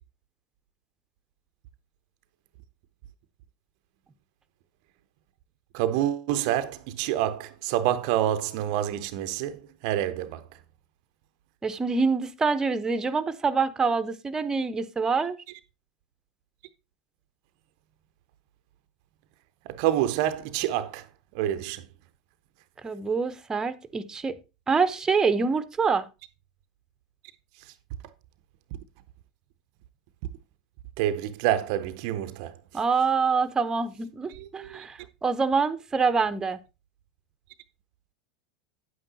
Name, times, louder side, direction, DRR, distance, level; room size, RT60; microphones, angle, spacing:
voice 1, 5.7-10.5 19.7-21.1 21.3-21.9 31.0-32.6 34.3-34.9, right 12 dB, 50° right, 0.6 m, -27 dB
voice 2, 11.6-15.4 22.8-24.4 24.7-26.0 32.7-36.6, right 5 dB, 15° right, 0.7 m, -26 dB
9.2 x 8.8 x 2.8 m
figure-of-eight pair, 85°, 4 cm